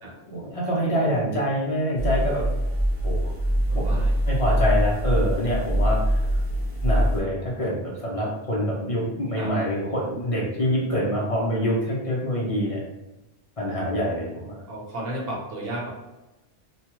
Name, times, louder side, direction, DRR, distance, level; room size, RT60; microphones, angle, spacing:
voice 1, 0.3-2.5 3.0-3.2 3.7-4.0 4.3-6.2 6.8-12.8 13.6-14.6, equal, 35° left, -4 dB, 0.6 m, -25 dB
sound 1, 2.0-7.2, equal, ahead, 0.7 m, -23 dB
voice 2, 3.7-4.1 9.4-9.5 14.4-15.9, right 1 dB, 55° right, -4 dB, 1.0 m, -33 dB
2.9 x 2.2 x 3.0 m, 1.0 s
omnidirectional pair, 1.2 m